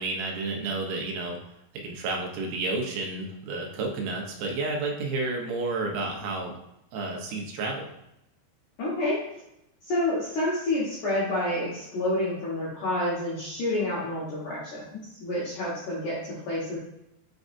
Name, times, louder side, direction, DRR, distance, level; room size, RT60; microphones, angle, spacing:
voice 1, 0.0-1.4 1.7-6.6 6.9-7.9, right 3 dB, 70° right, 1 dB, 2.7 m, -31 dB
voice 2, 8.8-9.2 9.9-16.8, left 1 dB, 60° left, -7 dB, 2.4 m, -29 dB
8.5 x 4.8 x 2.6 m, 0.81 s
omnidirectional pair, 5.0 m